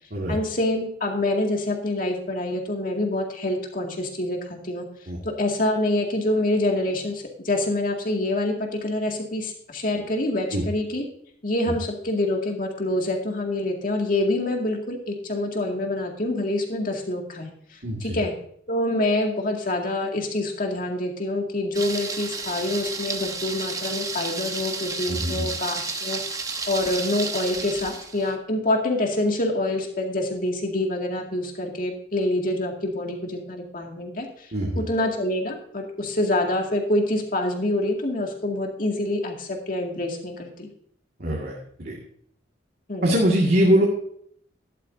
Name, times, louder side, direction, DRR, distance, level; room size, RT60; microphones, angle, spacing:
voice 1, 0.3-4.9 5.2-11.0 11.4-18.3 18.7-26.2 26.7-40.7 42.9-43.1, left 1 dB, 50° left, 2 dB, 2.1 m, -26 dB
voice 2, 17.8-18.2 25.1-25.5 34.5-34.8 41.2-42.0 43.0-43.9, equal, 55° right, -3 dB, 2.0 m, -22 dB
Thunder, 21.7-28.3, right 4 dB, 20° right, 1.0 m, -32 dB
12.5 x 11.5 x 2.7 m, 0.65 s
head